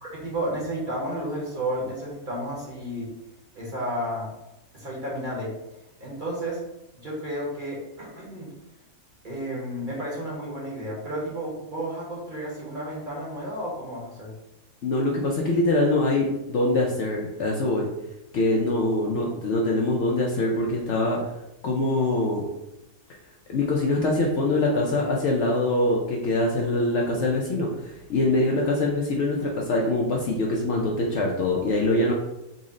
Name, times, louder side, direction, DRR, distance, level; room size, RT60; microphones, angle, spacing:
voice 1, 0.0-3.1 3.5-4.3 4.7-5.6 6.0-6.6 6.9-8.5 9.2-14.3 19.2-19.3, right 1 dB, 40° right, -4 dB, 0.9 m, -32 dB
voice 2, 14.8-17.9 18.3-21.2 21.6-22.4 23.5-32.1, left 2 dB, 65° left, -1 dB, 0.7 m, -24 dB
4.0 x 2.0 x 3.6 m, 0.94 s
omnidirectional pair, 1.6 m